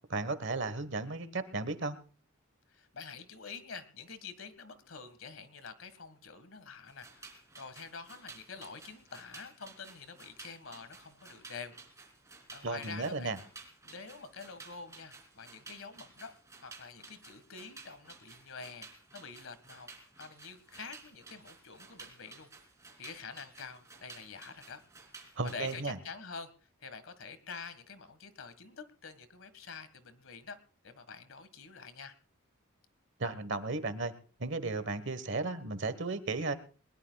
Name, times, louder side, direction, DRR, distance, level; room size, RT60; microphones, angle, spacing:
voice 1, 0.1-2.0 12.6-13.4 25.4-26.0 33.2-34.1 34.4-36.5, right 3 dB, 55° right, 13 dB, 1.3 m, -34 dB
voice 2, 2.7-11.7 12.5-13.3 13.8-16.3 16.6-22.5 23.0-24.8 25.1-30.6 30.8-32.2, left 5 dB, 65° left, 12 dB, 1.7 m, -47 dB
sound 1, 6.9-25.8, right 4 dB, 15° right, 3.0 m, -54 dB
21.5 x 20.5 x 2.3 m, 0.39 s
head